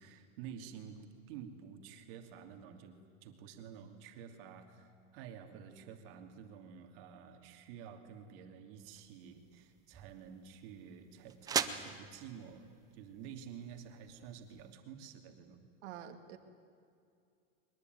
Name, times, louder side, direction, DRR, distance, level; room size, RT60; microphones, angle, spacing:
voice 1, 0.0-12.7 12.9-15.7, right 8 dB, 50° right, 5 dB, 2.8 m, -50 dB
sound 1, 8.8-14.7, right 7 dB, 10° right, 0.5 m, -42 dB
voice 2, 15.8-16.4, right 10 dB, 65° right, 7 dB, 2.3 m, -47 dB
22.5 x 21.5 x 9.5 m, 2.4 s
supercardioid pair, 165°, 37 cm